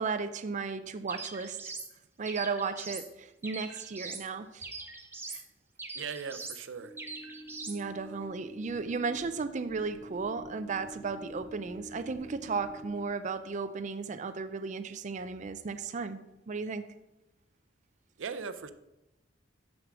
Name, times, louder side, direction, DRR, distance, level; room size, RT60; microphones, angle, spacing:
voice 1, 0.0-1.7 2.2-4.7 5.3-5.4 7.7-16.2 16.5-16.8, right 4 dB, 40° right, 10 dB, 0.4 m, -35 dB
sound 1, 1.1-1.9 2.2-3.1 3.4-4.3 4.6-5.4 5.8-6.6 7.0-7.8, right 3 dB, 10° right, 0.8 m, -42 dB
voice 2, 5.9-6.9 8.0-8.3 18.2-18.7, right 6 dB, 90° right, 11 dB, 0.6 m, -39 dB
sound 2, 6.8-13.0, equal, 30° left, 2.0 m, -47 dB
6.5 x 6.3 x 6.0 m, 0.94 s
head